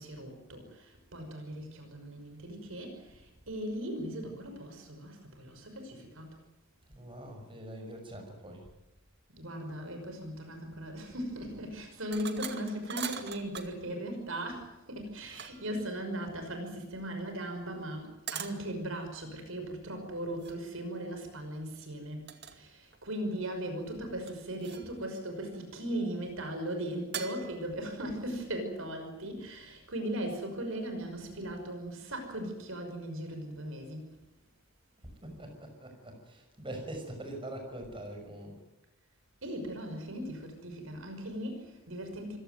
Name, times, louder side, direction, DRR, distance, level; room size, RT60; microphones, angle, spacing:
voice 1, 0.0-6.4 9.3-34.1 39.4-42.4, right 1 dB, 70° right, 5 dB, 5.7 m, -38 dB
voice 2, 6.9-8.7 35.2-38.6, right 1 dB, 25° right, 4 dB, 6.0 m, -43 dB
sound 1, 12.1-13.8 15.0-15.8 18.3-18.6 20.4-20.6 22.3-22.6 22.9-23.5 24.3-25.0 27.1-27.7, right 8 dB, 50° right, 2.3 m, -42 dB
26.0 x 17.0 x 9.3 m, 0.98 s
head